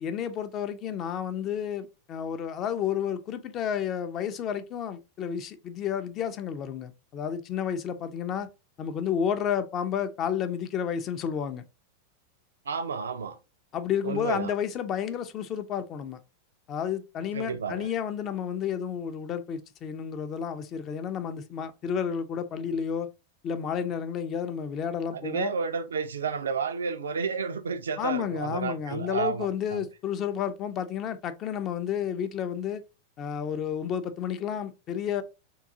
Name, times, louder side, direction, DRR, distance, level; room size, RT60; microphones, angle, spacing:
voice 1, 0.0-8.5 8.8-11.6 13.7-16.2 16.7-23.1 23.4-25.5 28.0-32.8 33.2-35.2, left 8 dB, 35° left, 0.4 m, -31 dB
voice 2, 12.7-13.4 14.0-14.5 17.3-17.9 25.1-29.9, right 5 dB, 70° right, 0.4 m, -31 dB
3.7 x 2.3 x 2.6 m
figure-of-eight pair, 90°, 0 cm